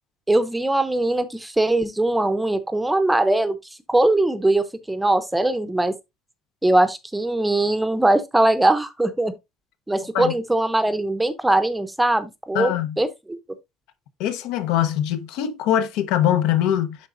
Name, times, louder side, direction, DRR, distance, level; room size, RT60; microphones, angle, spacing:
voice 1, 0.3-3.6 3.9-5.9 6.6-9.3 9.9-13.4, right 1 dB, 5° right, 0.6 m, -21 dB
voice 2, 12.5-13.0 14.2-17.0, left 11 dB, 85° left, 0.8 m, -22 dB
11.0 x 3.8 x 2.5 m
cardioid pair, 165°, 0 cm